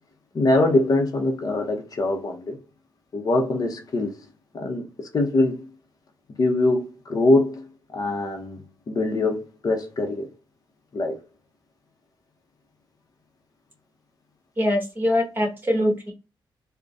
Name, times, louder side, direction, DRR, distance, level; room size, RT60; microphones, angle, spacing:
voice 1, 0.3-2.6 3.1-4.2 4.5-5.7 6.4-10.3 10.9-11.2, left 2 dB, 45° left, 0.8 m, -23 dB
voice 2, 14.6-16.1, left 1 dB, 20° right, 1.4 m, -23 dB
3.9 x 2.2 x 3.4 m
wide cardioid pair, 145°, 9 cm